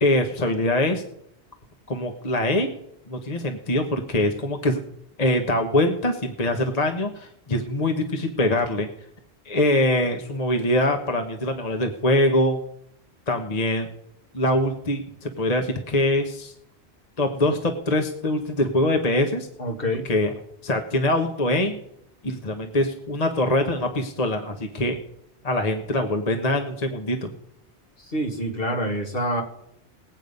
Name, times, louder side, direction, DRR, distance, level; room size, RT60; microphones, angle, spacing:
voice 1, 0.0-1.0 1.9-2.7 3.1-4.8 5.2-8.9 9.4-12.6 13.3-13.9 14.3-16.5 17.2-19.5 20.0-20.3 20.6-21.8 22.2-25.0 25.4-27.3, left 1 dB, 40° left, 4 dB, 1.2 m, -23 dB
voice 2, 19.6-20.1 28.1-29.4, equal, 55° left, 2 dB, 2.2 m, -26 dB
20.0 x 8.4 x 5.3 m, 0.76 s
omnidirectional pair, 1.1 m